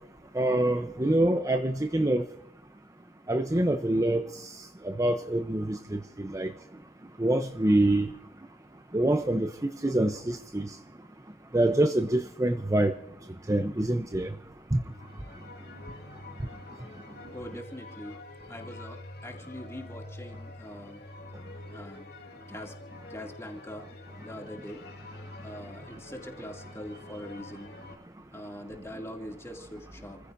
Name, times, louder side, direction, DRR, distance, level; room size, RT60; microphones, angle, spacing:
voice 1, 0.3-2.2 3.3-4.5 4.8-6.5 7.2-8.1 8.9-9.5 9.8-10.7 11.5-12.9 13.5-14.3 14.7-14.8, right 1 dB, 20° right, 0.7 m, -25 dB
sound 1, 14.8-28.0, left 2 dB, 60° left, 2.8 m, -46 dB
voice 2, 17.3-18.2 18.5-21.0 21.7-22.1 22.5-22.8 23.1-23.9 24.2-24.8 25.4-27.7 28.3-30.2, equal, 15° left, 2.6 m, -42 dB
29.5 x 15.5 x 2.7 m
head